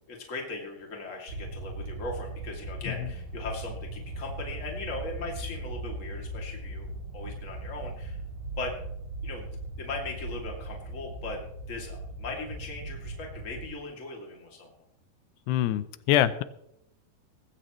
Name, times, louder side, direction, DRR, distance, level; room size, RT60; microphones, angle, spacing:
voice 1, 0.1-8.2 8.6-8.8 9.2-9.5 9.8-11.4 11.7-14.7, left 3 dB, 25° left, 0 dB, 2.2 m, -39 dB
sound 1, 1.3-13.7, right 2 dB, 45° right, 5.1 m, -38 dB
voice 2, 15.5-16.4, left 12 dB, 90° left, 14 dB, 2.8 m, -25 dB
19.5 x 15.5 x 3.1 m, 0.75 s
omnidirectional pair, 4.7 m